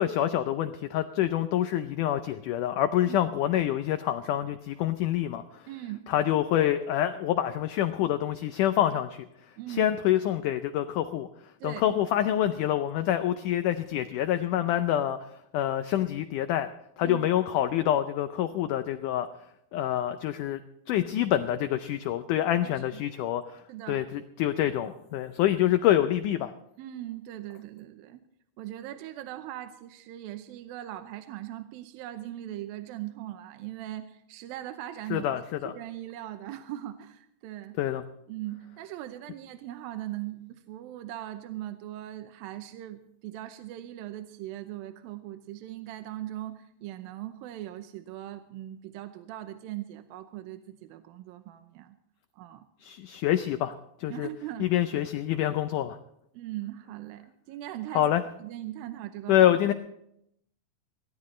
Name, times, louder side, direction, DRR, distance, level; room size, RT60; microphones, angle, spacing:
voice 1, 0.0-5.7 6.1-9.3 9.7-11.3 11.6-15.2 15.5-16.7 17.0-19.3 19.7-20.6 20.9-23.6 23.9-26.5 35.1-35.7 37.8-38.0 52.8-54.3 54.6-56.0 58.0-58.2 59.3-59.7, left 12 dB, 90° left, 10 dB, 1.8 m, -26 dB
voice 2, 5.7-6.1 9.6-9.9 11.6-11.9 17.0-17.3 22.6-23.0 23.7-24.1 26.8-28.2 28.6-35.3 35.6-37.8 38.3-52.0 52.3-52.7 54.1-54.7 56.3-59.4, right 13 dB, 80° right, 9 dB, 2.4 m, -40 dB
22.0 x 17.0 x 3.2 m, 0.77 s
omnidirectional pair, 4.4 m